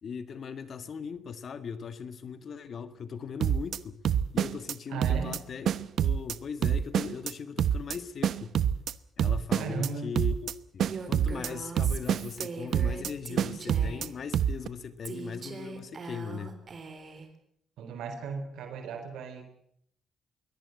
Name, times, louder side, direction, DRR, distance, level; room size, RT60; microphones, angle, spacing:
voice 1, 0.0-4.0 4.3-8.5 9.2-16.6, left 6 dB, 50° left, 12 dB, 1.8 m, -39 dB
sound 1, 3.4-3.8 4.0-4.7 5.0-5.4 5.7-6.4 6.6-7.3 7.6-8.0 8.2-8.9 9.2-9.9 10.2-10.5 10.8-11.5 11.8-12.5 12.7-13.1 13.4-14.1 14.3-14.7, right 9 dB, 65° right, 1.0 m, -26 dB
voice 2, 4.9-5.4 9.6-10.1 17.8-19.4, right 5 dB, 85° right, 8 dB, 4.0 m, -36 dB
Female speech woman speaking, 10.9-14.2 15.0-17.3, right 4 dB, 35° right, 3.7 m, -41 dB
23.0 x 18.5 x 7.9 m, 0.69 s
cardioid pair, 125°, 0 cm